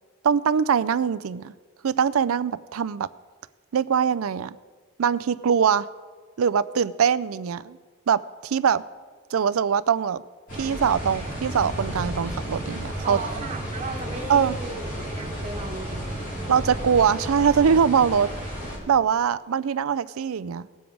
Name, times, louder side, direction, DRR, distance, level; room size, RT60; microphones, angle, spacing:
voice 1, 0.2-1.5 1.8-3.1 3.7-4.6 5.0-5.9 6.4-7.8 8.1-8.8 9.3-10.2 10.6-13.2 14.3-14.6 16.5-18.3 18.9-20.7, right 7 dB, 80° right, 16 dB, 0.4 m, -22 dB
sound 1, 10.5-18.8, right 1 dB, 40° left, 3.5 m, -32 dB
voice 2, 13.0-16.2, right 3 dB, 30° right, 1 dB, 1.2 m, -35 dB
18.0 x 7.1 x 4.7 m, 1.5 s
head